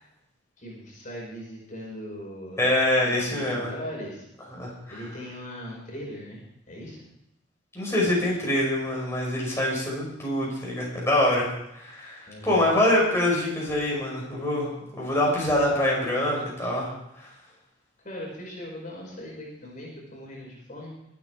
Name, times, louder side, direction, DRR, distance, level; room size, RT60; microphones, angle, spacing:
voice 1, 0.6-2.6 3.0-4.3 4.9-7.0 12.3-12.7 18.0-20.9, equal, 45° left, -2 dB, 5.4 m, -39 dB
voice 2, 2.6-3.7 4.5-5.0 7.7-11.5 11.7-17.3, left 1 dB, 15° left, -4 dB, 5.6 m, -25 dB
22.5 x 9.7 x 4.7 m, 0.84 s
head